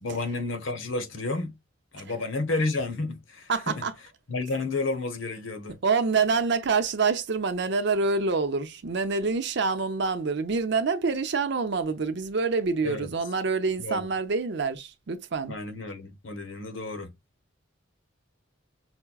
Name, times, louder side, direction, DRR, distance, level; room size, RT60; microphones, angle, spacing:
voice 1, 0.0-1.5 1.9-3.8 4.3-5.8 12.8-13.1 13.8-14.1 15.5-17.1, left 3 dB, 85° left, 0.9 m, -31 dB
voice 2, 3.5-3.9 5.8-15.6, right 4 dB, 60° right, 0.6 m, -26 dB
5.7 x 2.1 x 2.3 m
head